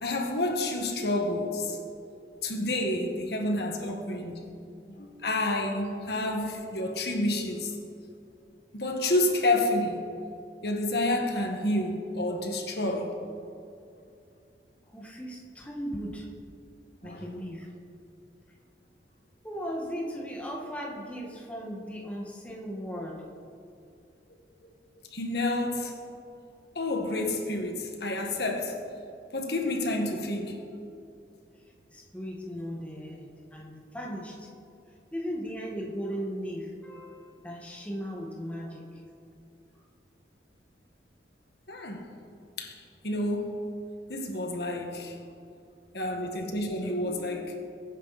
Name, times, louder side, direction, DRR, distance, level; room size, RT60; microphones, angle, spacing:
voice 1, 0.0-2.1 2.3-4.5 4.9-7.7 8.7-10.1 10.6-13.1 17.0-17.3 25.1-26.0 26.8-28.8 29.3-30.6 41.7-42.1 42.6-42.8 43.0-43.6 44.1-45.2 45.9-47.5, left 1 dB, 65° left, 2 dB, 1.7 m, -29 dB
voice 2, 14.9-16.3 17.0-17.7 19.4-23.3 31.9-34.5 35.1-39.0, equal, 10° left, -2 dB, 1.6 m, -37 dB
22.5 x 9.6 x 4.2 m, 2.6 s
head